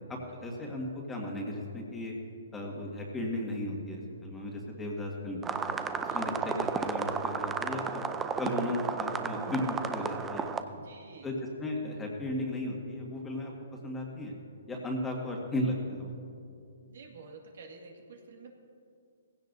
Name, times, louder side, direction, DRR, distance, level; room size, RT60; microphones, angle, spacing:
voice 1, 0.1-2.1 2.5-5.6 6.0-8.0 8.4-10.7 11.2-13.5 13.8-14.3 14.7-16.1, left 1 dB, 10° left, -1 dB, 1.9 m, -35 dB
sound 1, 5.4-10.6, right 5 dB, 10° right, 0.5 m, -33 dB
voice 2, 6.0-6.4 10.7-11.3 16.9-18.5, right 4 dB, 70° right, 1 dB, 2.0 m, -50 dB
18.0 x 16.0 x 2.7 m, 2.5 s
hypercardioid pair, 150°, 0 cm